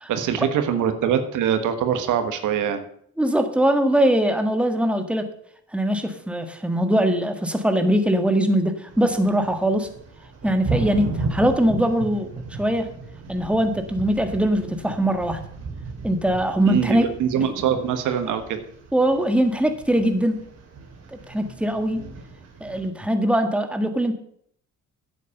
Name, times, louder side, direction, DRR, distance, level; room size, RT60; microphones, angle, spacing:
voice 1, 0.1-2.8 16.6-18.6, right 8 dB, 85° right, 9 dB, 1.4 m, -23 dB
voice 2, 3.2-5.3 5.7-9.9 10.4-12.9 13.3-15.4 16.0-17.1 18.9-20.4 21.1-22.0 22.6-24.1, right 1 dB, 5° right, 7 dB, 1.6 m, -21 dB
sound 1, 8.9-22.9, right 3 dB, 60° right, 2.9 m, -35 dB
9.7 x 8.1 x 7.1 m, 0.66 s
cardioid pair, 90°, 30 cm